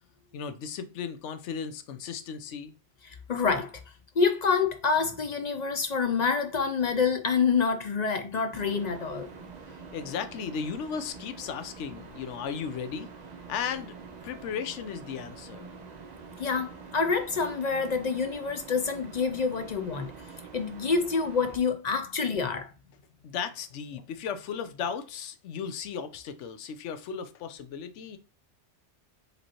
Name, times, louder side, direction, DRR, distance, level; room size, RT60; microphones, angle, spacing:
voice 1, 0.3-2.7 9.7-13.1 13.5-14.0 14.2-15.7 23.2-28.2, left 7 dB, 85° left, 0.9 m, -36 dB
voice 2, 3.1-3.8 4.2-9.3 16.4-20.1 20.5-22.7, left 5 dB, 55° left, 0.5 m, -27 dB
sound 1, 8.5-21.6, right 5 dB, 45° right, 0.7 m, -46 dB
5.1 x 3.1 x 2.8 m
omnidirectional pair, 1.2 m